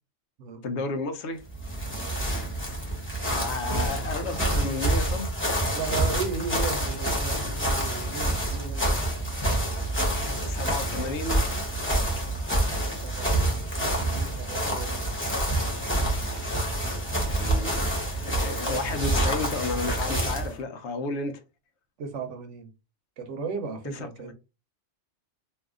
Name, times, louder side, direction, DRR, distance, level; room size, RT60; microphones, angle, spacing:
voice 1, 0.6-1.4 3.3-5.3 7.3-7.4 10.4-11.4 17.3-21.4 23.8-24.3, left 3 dB, 70° left, 0.9 m, -32 dB
sound 1, 1.4-20.5, right 1 dB, 10° left, 0.9 m, -27 dB
voice 2, 5.7-8.9 13.0-14.9 20.5-20.7 22.0-22.7 23.2-24.3, right 5 dB, 80° right, 1.0 m, -36 dB
2.7 x 2.4 x 3.6 m
omnidirectional pair, 1.2 m